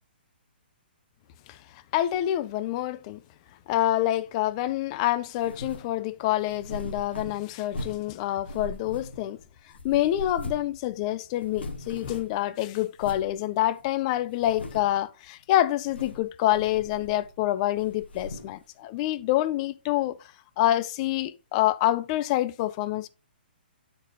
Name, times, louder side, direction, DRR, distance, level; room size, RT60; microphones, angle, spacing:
voice 1, 1.9-3.2 3.7-9.4 9.8-20.2 20.6-23.1, left 14 dB, 35° left, 0.6 m, -27 dB
sound 1, 5.4-5.9 6.5-8.1 8.5-9.4 9.7-10.8 11.0-11.1 11.4-12.4 13.0-13.3 13.8-13.9 14.3-15.0 15.7-16.3 16.5-17.4 17.8-18.6, left 2 dB, 90° left, 1.5 m, -39 dB
7.9 x 4.6 x 3.9 m
hypercardioid pair, 140°, 6 cm